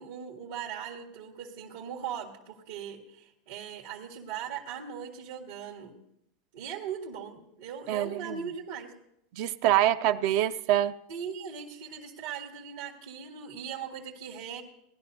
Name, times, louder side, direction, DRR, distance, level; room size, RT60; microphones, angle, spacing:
voice 1, 0.0-5.9 6.5-8.9 11.1-14.6, right 7 dB, 85° right, -5 dB, 1.8 m, -39 dB
voice 2, 7.9-8.4 9.3-10.9, right 12 dB, 60° right, 11 dB, 0.5 m, -25 dB
18.5 x 11.0 x 2.7 m, 0.76 s
supercardioid pair, 125°, 0 cm